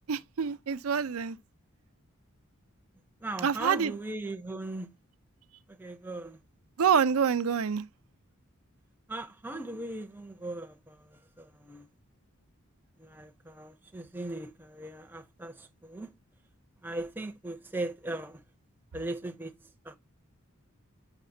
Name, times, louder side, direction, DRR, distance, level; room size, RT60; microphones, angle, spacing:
voice 1, 0.1-1.4 3.4-3.9 6.8-7.8, right 7 dB, 85° right, 0.5 m, -26 dB
voice 2, 3.2-4.9 5.7-6.4 9.1-11.9 13.0-16.1 16.8-18.4 18.9-19.5 19.8-20.0, right 2 dB, 10° right, 0.6 m, -38 dB
8.0 x 5.8 x 2.6 m
head